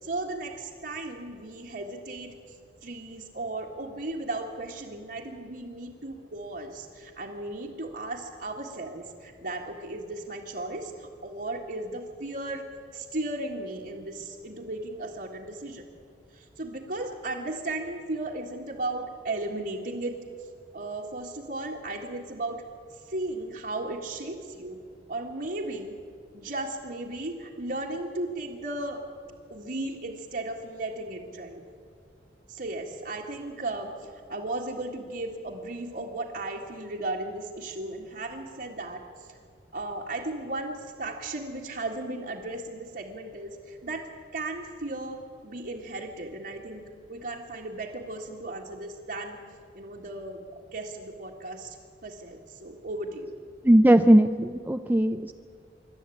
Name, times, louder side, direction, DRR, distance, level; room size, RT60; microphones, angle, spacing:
voice 1, 0.0-2.3 2.8-15.8 16.3-20.2 20.7-22.6 22.9-24.8 25.1-26.0 26.3-29.0 29.5-31.6 32.5-39.4 39.7-44.1 44.3-49.4 49.7-51.7 52.0-53.3, right 2 dB, 60° right, -4 dB, 1.8 m, -35 dB
voice 2, 53.6-55.3, right 1 dB, 10° right, 7 dB, 0.4 m, -19 dB
25.0 x 12.0 x 8.5 m, 2.4 s
head